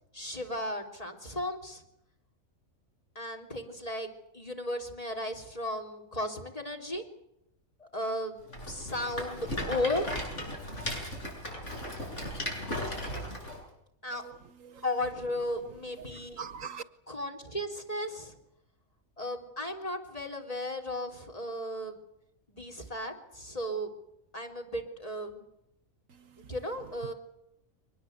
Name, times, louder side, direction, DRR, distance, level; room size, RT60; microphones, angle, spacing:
voice 1, 0.1-1.8 3.2-7.0 7.8-8.4 8.7-10.1 14.0-14.2 14.8-16.4 17.1-18.4 19.2-22.0 22.5-23.9 24.3-25.4 26.5-27.1, left 1 dB, 25° left, 3.7 m, -35 dB
Rattle, 8.5-13.6, equal, 55° left, 8.6 m, -36 dB
voice 2, 16.0-16.8 26.1-26.5, right 6 dB, 70° right, 1.4 m, -44 dB
24.5 x 20.0 x 8.2 m
omnidirectional pair, 1.4 m